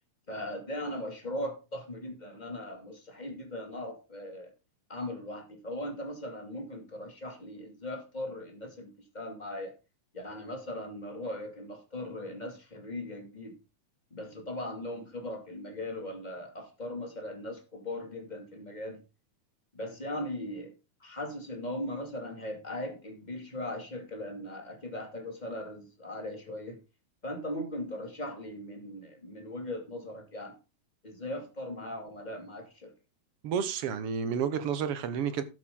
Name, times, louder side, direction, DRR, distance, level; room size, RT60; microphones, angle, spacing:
voice 1, 0.3-4.5 4.9-9.8 10.1-13.6 14.1-19.0 19.7-20.7 21.0-26.8 27.2-30.6 31.0-32.9, left 1 dB, 15° left, 2.2 m, -39 dB
voice 2, 33.4-35.4, right 7 dB, 60° right, 1.8 m, -30 dB
12.5 x 8.2 x 3.8 m
omnidirectional pair, 3.5 m